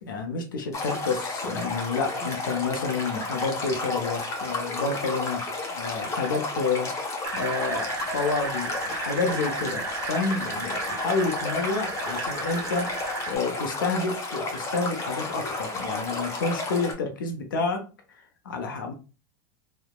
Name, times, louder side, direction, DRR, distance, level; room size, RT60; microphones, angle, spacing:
voice 1, 0.0-18.9, left 4 dB, 90° left, 5 dB, 0.5 m, -29 dB
Stream, 0.7-16.9, left 2 dB, 30° left, 0.7 m, -32 dB
sound 1, 7.2-13.4, right 5 dB, 30° right, 0.5 m, -35 dB
2.8 x 2.0 x 2.2 m, 0.33 s
hypercardioid pair, 100°, 11 cm